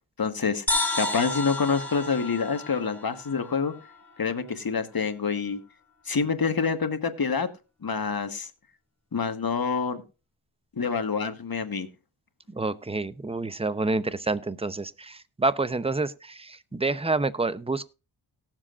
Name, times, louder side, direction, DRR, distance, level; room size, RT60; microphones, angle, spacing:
voice 1, 0.2-0.6 0.9-3.7 4.2-5.6 6.0-7.5 7.8-8.5 9.1-10.0 10.8-11.9, left 5 dB, 45° left, 1.4 m, -27 dB
sound 1, 0.7-4.2, left 2 dB, 5° left, 3.9 m, -31 dB
voice 2, 12.5-17.9, right 3 dB, 10° right, 0.7 m, -28 dB
18.5 x 7.5 x 2.5 m
cardioid pair, 45°, 48 cm